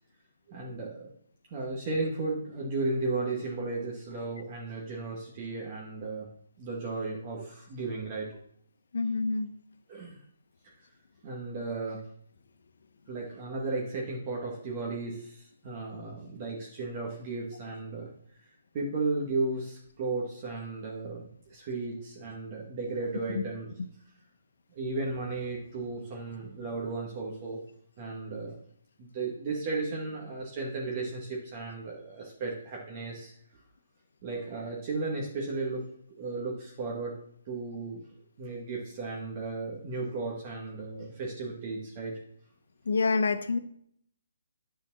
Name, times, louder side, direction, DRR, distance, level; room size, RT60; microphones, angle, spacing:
voice 1, 0.5-1.1 1.5-6.3 6.6-8.3 9.9-10.2 11.2-12.0 13.1-18.1 18.7-23.7 24.7-27.6 28.0-28.5 29.0-33.3 34.2-35.9 36.2-37.1 37.5-38.0 38.4-42.2, right 3 dB, 30° right, -3 dB, 2.0 m, -34 dB
voice 2, 8.9-9.5 23.3-23.4 42.8-43.6, left 4 dB, 70° left, 10 dB, 1.1 m, -27 dB
9.9 x 5.1 x 6.3 m, 0.68 s
hypercardioid pair, 165°, 0 cm